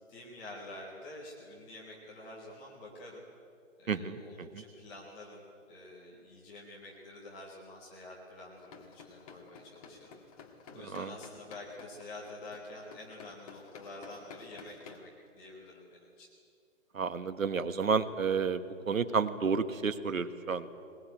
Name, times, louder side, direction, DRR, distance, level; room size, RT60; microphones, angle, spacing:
voice 1, 0.0-3.2 3.8-10.2 10.7-16.3, left 2 dB, 5° left, -3 dB, 0.5 m, -48 dB
voice 2, 3.9-4.6 10.9-11.1 16.9-20.7, right 5 dB, 85° right, 12 dB, 1.6 m, -31 dB
sound 1, 8.6-15.0, left 5 dB, 25° left, 1.8 m, -53 dB
21.0 x 20.0 x 9.0 m, 2.5 s
hypercardioid pair, 155°, 39 cm